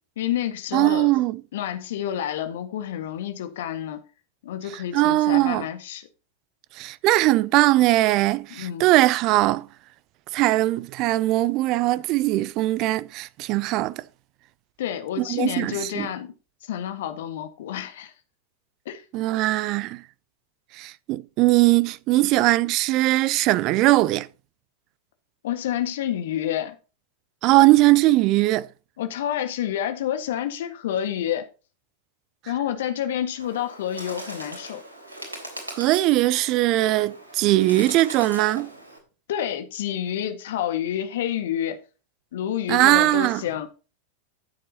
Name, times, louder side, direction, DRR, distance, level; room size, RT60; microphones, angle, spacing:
voice 1, 0.2-1.1 1.5-4.0 4.4-6.1 8.5-8.9 14.8-16.3 16.6-18.1 18.8-19.0 25.4-26.7 29.0-31.4 32.5-34.8 39.3-41.8 42.3-43.7, left 10 dB, 55° left, 1.6 m, -29 dB
voice 2, 0.7-1.4 4.9-5.6 6.8-9.7 10.3-14.0 15.2-16.1 19.1-20.0 20.8-24.3 27.4-28.7 35.7-38.7 42.7-43.4, right 17 dB, 40° right, 0.6 m, -20 dB
Bird, 33.4-39.0, right 1 dB, 80° right, 3.5 m, -40 dB
13.0 x 7.6 x 2.9 m
figure-of-eight pair, 90°, 0 cm